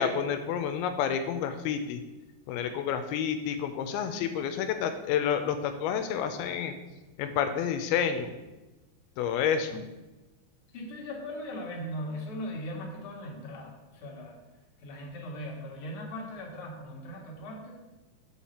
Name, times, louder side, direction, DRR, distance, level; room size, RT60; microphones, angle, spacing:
voice 1, 0.0-2.0 2.5-6.8 7.2-8.3 9.2-9.8, left 8 dB, 90° left, 8 dB, 2.5 m, -29 dB
voice 2, 10.7-14.4 14.8-17.8, equal, 45° left, -3 dB, 2.1 m, -39 dB
7.4 x 6.6 x 4.2 m, 1.1 s
omnidirectional pair, 4.4 m